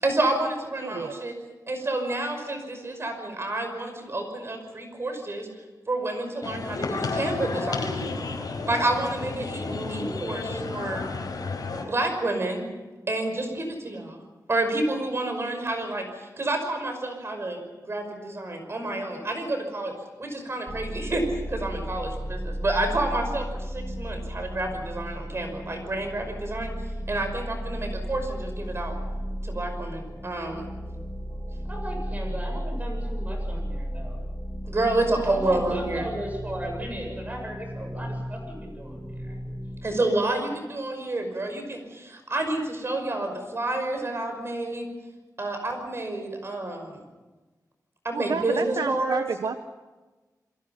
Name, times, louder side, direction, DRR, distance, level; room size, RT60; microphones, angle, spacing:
voice 1, 0.0-1.3 1.7-5.5 5.9-8.0 8.6-11.1 11.8-12.6 13.1-14.2 14.5-17.6 17.9-19.9 20.2-26.7 27.1-28.9 29.4-30.7 34.6-36.1 39.8-44.9 45.4-47.0 48.0-49.2, right 2 dB, 40° right, 5 dB, 5.7 m, -29 dB
voice 2, 0.8-1.2 48.1-49.5, right 5 dB, 80° right, 8 dB, 1.0 m, -30 dB
sound 1, 6.4-11.8, left 3 dB, 75° left, 4.8 m, -31 dB
voice 3, 9.5-10.8 31.7-34.3 35.2-39.4, right 1 dB, 25° right, 2 dB, 7.7 m, -36 dB
sound 2, 20.7-40.0, equal, 5° left, 1.6 m, -34 dB
29.0 x 22.5 x 5.8 m, 1.2 s
wide cardioid pair, 130°, 7 cm